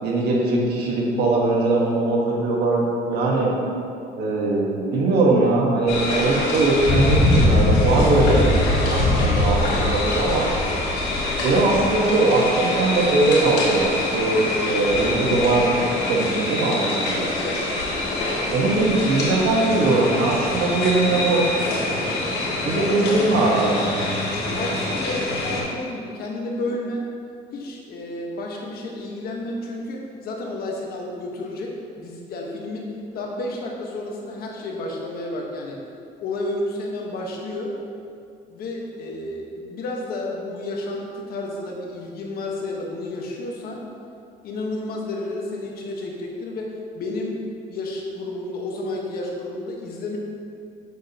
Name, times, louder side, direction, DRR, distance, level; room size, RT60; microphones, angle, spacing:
voice 1, 0.0-3.5 4.1-8.5 8.9-10.5 11.4-15.6 16.1-17.3 18.5-21.6 22.6-24.2, right 2 dB, 70° right, -2 dB, 1.5 m, -21 dB
sound 1, 5.9-25.6, left 2 dB, 85° left, 1.8 m, -23 dB
voice 2, 17.3-17.7 22.7-23.4 24.5-27.0 27.5-35.8 36.2-37.8 38.5-43.8 44.4-47.4 47.7-50.2, left 2 dB, 65° left, -1 dB, 1.3 m, -31 dB
7.4 x 7.0 x 2.9 m, 2.4 s
cardioid pair, 110°, 17 cm